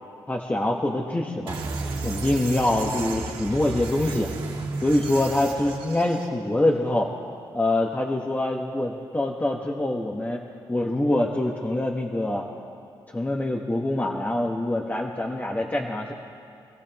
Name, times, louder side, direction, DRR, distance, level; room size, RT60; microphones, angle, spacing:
voice 1, 0.3-1.6 2.0-4.3 4.8-7.1 7.5-12.4 13.1-16.1, left 1 dB, 20° left, -1 dB, 1.4 m, -25 dB
sound 1, 1.5-6.3, right 3 dB, 80° right, 2.4 m, -33 dB
25.5 x 15.0 x 3.0 m, 2.4 s
cardioid pair, 75°, 9 cm